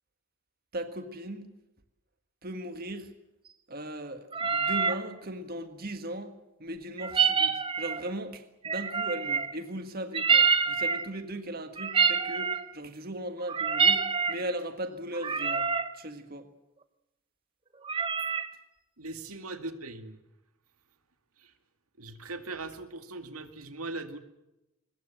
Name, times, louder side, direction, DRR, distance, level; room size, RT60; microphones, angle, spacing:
voice 1, 0.7-1.5 2.4-3.1 3.7-6.3 6.6-7.5 7.8-15.7 15.9-16.5, right 1 dB, 40° right, 7 dB, 1.6 m, -38 dB
sound 1, 4.3-5.0 7.0-8.1 8.6-9.6 10.1-11.1 11.8-12.7 13.4-14.4 15.1-15.9 17.8-18.5, right 5 dB, 25° right, 1.0 m, -26 dB
voice 2, 19.0-20.2 21.4-21.5 22.0-24.2, right 2 dB, 85° right, 8 dB, 2.3 m, -40 dB
23.0 x 21.0 x 7.6 m, 0.91 s
head